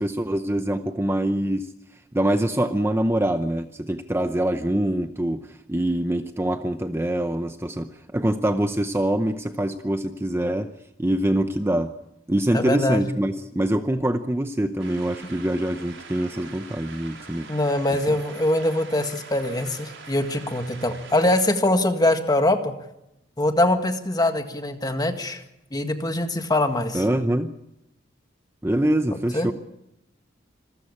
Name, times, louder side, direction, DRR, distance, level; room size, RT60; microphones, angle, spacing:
voice 1, 0.0-1.7 2.1-10.7 11.0-11.9 12.3-17.5 26.9-27.5 28.6-29.5, right 1 dB, 15° right, 9 dB, 0.7 m, -24 dB
voice 2, 12.5-13.1 17.5-22.7 23.4-25.4 25.7-27.0 29.3-29.5, left 1 dB, 20° left, 7 dB, 1.8 m, -23 dB
sound 1, 14.8-21.5, right 4 dB, 85° right, 4.8 m, -43 dB
26.5 x 14.5 x 8.7 m, 0.86 s
head